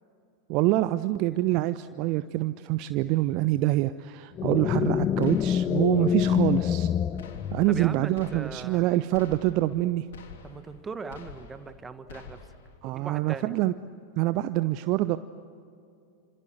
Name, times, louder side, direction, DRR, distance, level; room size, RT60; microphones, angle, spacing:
voice 1, 0.5-6.9 7.5-10.1 12.8-13.7 14.2-15.2, right 16 dB, 40° right, 13 dB, 0.7 m, -25 dB
sound 1, 4.4-8.0, left 8 dB, 30° left, 0.7 m, -26 dB
sound 2, 5.2-5.9 6.2-6.9 7.2-7.9 8.2-8.8 9.1-9.8 10.1-10.8 11.1-11.8 12.1-12.8, left 5 dB, 60° left, 3.2 m, -47 dB
voice 2, 7.7-8.9 10.4-12.4 12.8-13.5, right 4 dB, 15° right, 10 dB, 1.6 m, -40 dB
27.5 x 27.0 x 8.0 m, 2.5 s
figure-of-eight pair, 90°, 0 cm